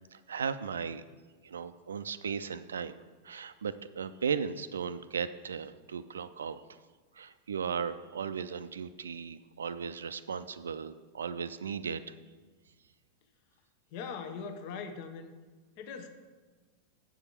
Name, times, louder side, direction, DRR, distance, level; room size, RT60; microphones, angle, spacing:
voice 1, 0.1-1.0 1.4-3.0 3.2-6.6 7.2-12.0, right 6 dB, 70° right, 13 dB, 0.4 m, -36 dB
voice 2, 13.9-15.3 15.8-16.1, left 5 dB, 45° left, 8 dB, 0.8 m, -40 dB
7.9 x 4.9 x 7.0 m, 1.3 s
figure-of-eight pair, 90°, 0 cm